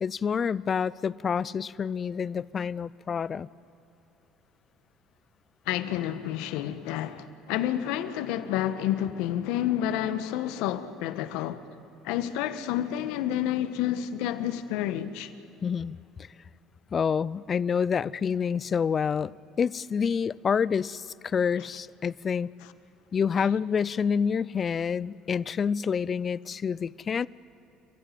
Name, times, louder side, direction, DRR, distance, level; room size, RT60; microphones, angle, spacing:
voice 1, 0.0-3.5 15.6-16.0 16.9-19.3 19.6-22.5 23.1-27.3, left 6 dB, 40° left, 0.6 m, -28 dB
voice 2, 5.7-11.6 12.0-15.3, left 11 dB, 75° left, 1.3 m, -29 dB
29.5 x 15.0 x 9.3 m
hypercardioid pair, 70°, 0 cm